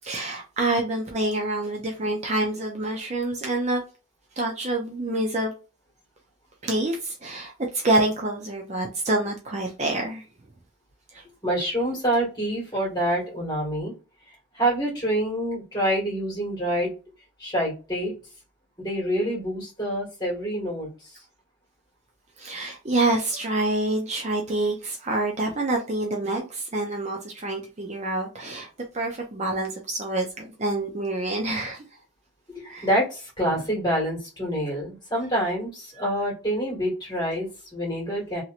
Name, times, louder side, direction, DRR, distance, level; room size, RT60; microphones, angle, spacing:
voice 1, 0.0-3.8 4.4-5.5 6.6-10.3 11.1-11.2 22.4-28.7 28.9-31.8 32.7-32.9, right 2 dB, 30° right, 1 dB, 0.5 m, -27 dB
voice 2, 11.4-13.9 14.5-16.9 17.4-18.1 18.8-20.9 32.6-38.4, equal, 20° left, -3 dB, 1.7 m, -26 dB
3.0 x 2.8 x 2.4 m, 0.32 s
head